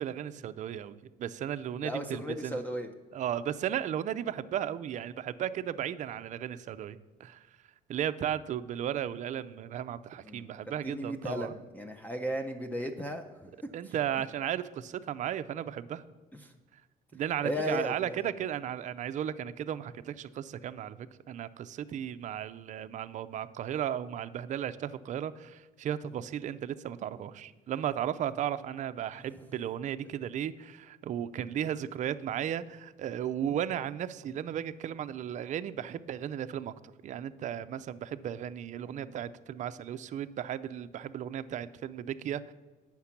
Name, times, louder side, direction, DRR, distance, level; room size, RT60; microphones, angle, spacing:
voice 1, 0.0-2.6 3.1-7.5 7.9-11.5 13.7-16.0 17.1-36.7 37.0-42.5, right 10 dB, 45° right, 12 dB, 0.4 m, -35 dB
voice 2, 1.8-2.9 10.2-10.5 10.8-13.9 16.3-16.5 17.4-18.2 39.0-39.1, equal, 10° left, 6 dB, 0.5 m, -36 dB
8.4 x 5.9 x 5.8 m, 1.3 s
cardioid pair, 110°, 17 cm